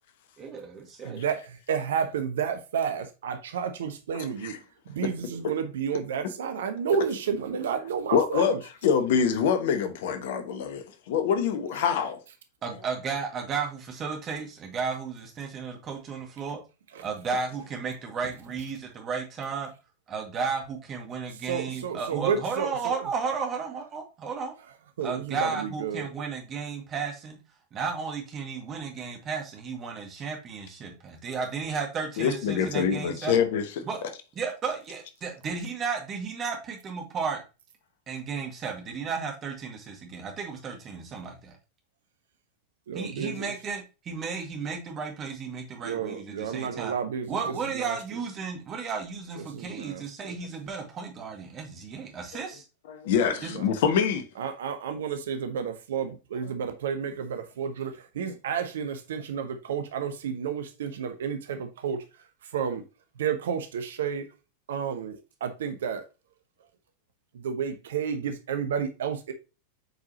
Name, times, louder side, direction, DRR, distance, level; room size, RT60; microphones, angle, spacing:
voice 1, 0.4-1.2 12.6-16.6 17.0-19.7 20.1-24.5 25.0-27.4 27.7-33.4 33.8-34.0 34.4-37.4 38.1-41.5 42.9-46.9 47.3-52.6 53.4-53.5, right 5 dB, 30° right, 1.9 m, -33 dB
voice 2, 1.0-4.5 4.9-8.6 16.9-17.0 21.5-22.9 25.0-26.1 42.9-43.5 45.8-47.4 47.7-48.0 49.5-50.3 53.5-53.6 54.4-62.0 62.5-62.8 63.2-64.3 64.7-66.0 67.3-69.3, right 7 dB, 60° right, 0.9 m, -31 dB
voice 3, 4.1-4.6 8.1-8.6 8.8-12.2 32.2-34.1 52.9-54.2, left 7 dB, 55° left, 1.0 m, -25 dB
7.9 x 4.7 x 2.9 m
figure-of-eight pair, 90°, 0 cm